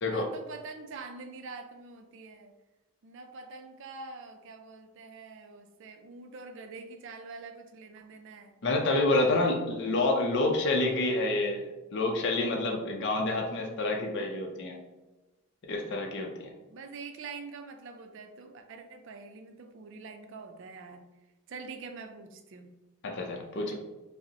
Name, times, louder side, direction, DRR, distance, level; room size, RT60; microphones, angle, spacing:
voice 1, 0.0-2.6 3.0-8.5 16.7-21.0 21.5-22.7 23.5-23.8, right 4 dB, 55° right, 6 dB, 0.4 m, -45 dB
voice 2, 8.6-14.8 15.7-16.3 23.0-23.7, left 2 dB, 55° left, 1 dB, 0.5 m, -28 dB
5.0 x 2.0 x 2.7 m, 1.1 s
head